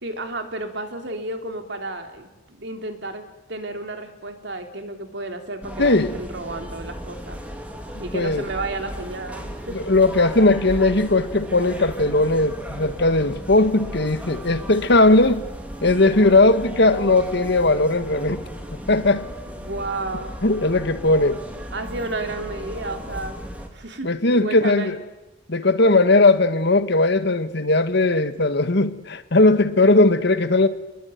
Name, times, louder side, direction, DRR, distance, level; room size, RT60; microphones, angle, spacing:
voice 1, 0.0-7.4 8.0-9.8 19.5-20.3 21.7-25.0, right 2 dB, 65° right, 3.2 m, -32 dB
sound 1, 5.6-23.7, equal, 10° right, 3.1 m, -35 dB
voice 2, 5.8-6.2 8.1-8.4 9.7-15.5 15.8-18.4 18.9-19.3 20.4-21.4 24.0-25.0 25.5-30.7, left 2 dB, 65° left, 1.6 m, -18 dB
28.5 x 21.5 x 9.4 m
head